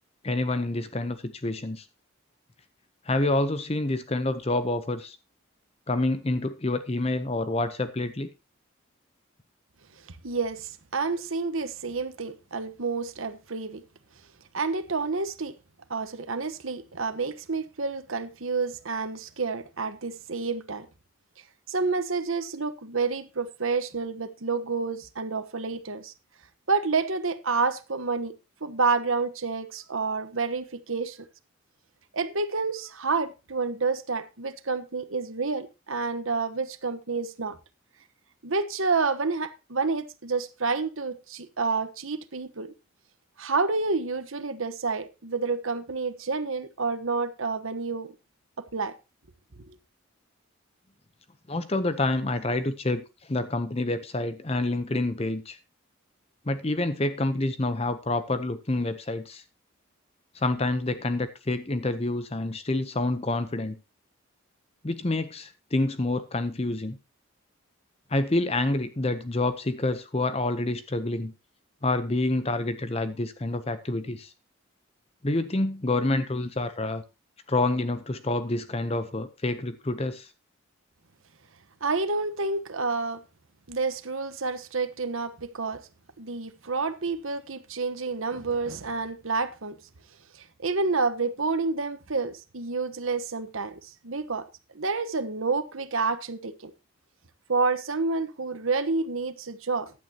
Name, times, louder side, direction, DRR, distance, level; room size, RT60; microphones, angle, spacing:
voice 1, 0.2-1.9 3.1-5.2 5.9-8.3 51.5-53.0 53.3-55.6 56.5-59.4 60.3-63.8 64.8-67.0 68.1-71.3 71.8-74.3 75.2-77.0 77.5-80.3, left 2 dB, 30° left, 0.7 m, -27 dB
voice 2, 10.2-13.8 14.5-15.6 15.9-20.9 21.7-26.1 26.7-28.3 28.6-31.2 32.1-37.6 38.4-42.7 43.4-48.1 48.6-48.9 81.8-83.2 83.7-85.8 86.2-89.8 90.6-93.8 94.0-94.5 94.7-96.7 97.5-99.9, right 4 dB, 75° right, 1.2 m, -29 dB
15.5 x 11.0 x 2.9 m
head